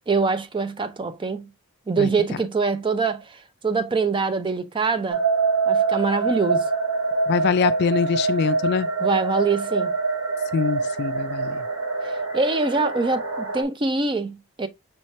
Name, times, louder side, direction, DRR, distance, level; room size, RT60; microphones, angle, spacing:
voice 1, 0.1-1.5 1.9-5.2 5.7-6.6 9.0-9.9 12.3-14.7, right 4 dB, 25° right, 0.4 m, -24 dB
sound 1, 5.1-13.6, right 4 dB, 80° right, 1.2 m, -25 dB
voice 2, 7.3-8.9 10.5-11.6, left 6 dB, 50° left, 0.3 m, -23 dB
5.5 x 2.8 x 3.1 m
head